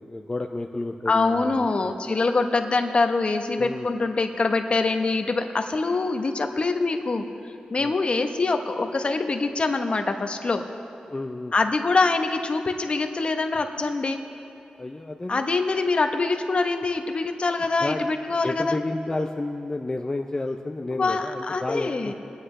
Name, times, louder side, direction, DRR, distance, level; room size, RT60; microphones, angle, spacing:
voice 1, 0.0-1.9 3.6-3.9 7.8-8.0 11.1-11.5 14.8-15.5 17.8-18.0 18.4-22.1, left 2 dB, 25° left, 3 dB, 0.6 m, -31 dB
voice 2, 1.1-7.3 7.7-10.7 11.5-14.2 15.3-18.8 20.9-22.1, left 3 dB, 45° left, 6 dB, 1.0 m, -24 dB
22.0 x 9.8 x 3.3 m, 2.6 s
cardioid pair, 75°, 3 cm